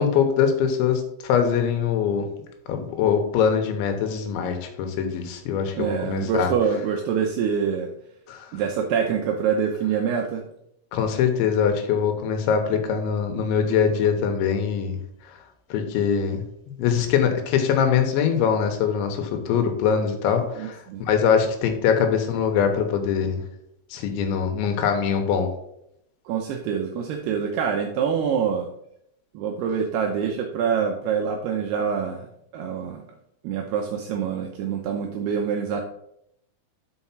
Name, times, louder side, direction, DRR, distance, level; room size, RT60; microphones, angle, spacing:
voice 1, 0.0-2.3 2.7-6.5 8.3-8.5 10.9-15.0 15.7-16.4 16.8-23.4 23.9-25.5, left 7 dB, 75° left, 5 dB, 3.3 m, -23 dB
voice 2, 5.8-7.9 8.5-10.4 20.5-21.0 26.3-28.7 29.3-32.3 32.5-33.0 33.4-35.8, right 7 dB, 90° right, 2 dB, 2.3 m, -25 dB
6.3 x 5.6 x 5.9 m, 0.77 s
omnidirectional pair, 5.5 m